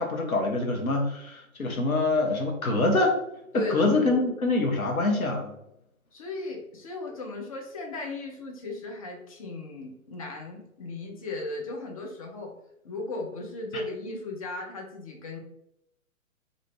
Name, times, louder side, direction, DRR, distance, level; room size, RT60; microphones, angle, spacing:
voice 1, 0.0-3.2 3.5-5.5 13.7-13.8, left 2 dB, 80° left, 1 dB, 1.0 m, -25 dB
voice 2, 3.5-4.2 6.1-12.5 12.8-15.4, left 2 dB, 25° left, 1 dB, 0.5 m, -36 dB
2.6 x 2.5 x 3.2 m, 0.81 s
figure-of-eight pair, 125°, 42 cm